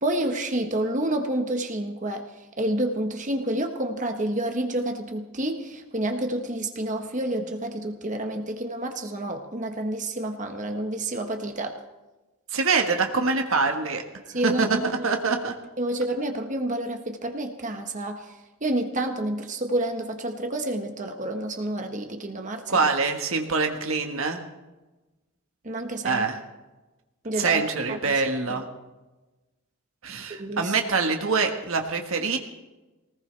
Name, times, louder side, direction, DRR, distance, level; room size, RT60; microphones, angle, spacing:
voice 1, 0.0-2.3 2.6-11.8 14.3-14.9 15.8-22.8 25.6-26.2 27.2-27.6 27.9-28.0 28.5-28.6 30.4-30.7, right 1 dB, 35° right, 4 dB, 1.3 m, -29 dB
voice 2, 12.5-14.0 14.4-15.5 22.7-24.4 26.0-26.4 27.4-28.6 30.0-32.4, right 4 dB, 70° right, 4 dB, 1.5 m, -24 dB
21.5 x 19.0 x 3.4 m, 1.1 s
head